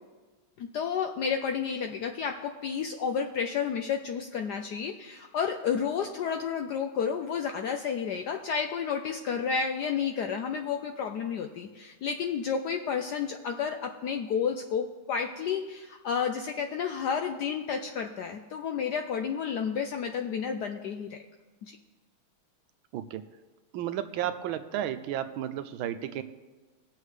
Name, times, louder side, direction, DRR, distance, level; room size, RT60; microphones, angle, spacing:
voice 1, 0.6-21.2 21.6-21.8, left 6 dB, 75° left, 5 dB, 0.9 m, -31 dB
voice 2, 23.7-26.2, right 11 dB, 75° right, 10 dB, 1.3 m, -33 dB
19.5 x 7.2 x 3.3 m, 1.3 s
omnidirectional pair, 2.3 m